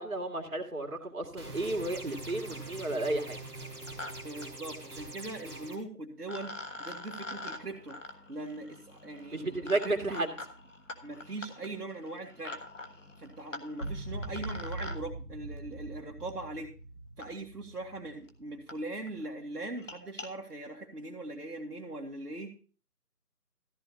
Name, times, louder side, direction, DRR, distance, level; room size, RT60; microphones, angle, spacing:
voice 1, 0.0-3.4 9.3-10.3, right 2 dB, 60° right, 4 dB, 2.2 m, -32 dB
sound 1, 1.4-5.7, right 2 dB, 5° right, 1.3 m, -43 dB
sound 2, 1.9-2.0 2.3-2.7 3.6-4.1 4.4-4.5 5.8-5.9 6.3-15.0 16.3-16.4 17.2-17.3 18.0-18.1 18.3-18.4 18.7-18.8 19.1-19.3 19.7-20.3, left 2 dB, 50° left, 1.4 m, -45 dB
voice 2, 4.2-8.0 8.3-10.3 11.0-12.6 13.2-16.7 17.2-22.6, right 2 dB, 75° right, -1 dB, 1.8 m, -41 dB
sound 3, 13.8-19.2, right 2 dB, 35° left, 1.4 m, -42 dB
14.0 x 11.5 x 2.8 m, 0.38 s
figure-of-eight pair, 160°, 47 cm